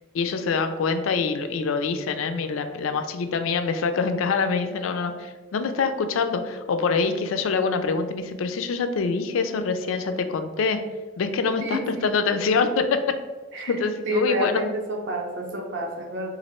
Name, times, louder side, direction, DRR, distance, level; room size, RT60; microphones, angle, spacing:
voice 1, 0.1-10.8 11.2-13.0 13.7-14.6, left 4 dB, 75° left, 8 dB, 0.4 m, -25 dB
voice 2, 11.6-12.1 13.5-13.8 14.1-16.3, equal, 60° right, 1 dB, 0.7 m, -28 dB
3.0 x 2.5 x 4.2 m, 1.3 s
head